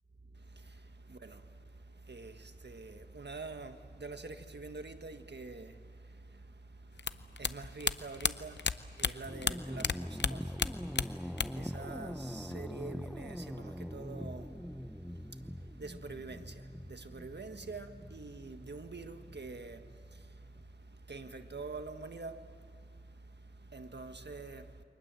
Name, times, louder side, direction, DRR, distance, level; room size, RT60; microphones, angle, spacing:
voice 1, 0.2-24.8, right 3 dB, 75° right, 1.6 m, -47 dB
sound 1, 7.0-9.9 10.2-11.7 12.0-12.7, left 5 dB, 85° left, 0.7 m, -33 dB
sound 2, 9.2-20.7, equal, ahead, 0.7 m, -43 dB
28.5 x 24.5 x 7.6 m
wide cardioid pair, 50°, 18 cm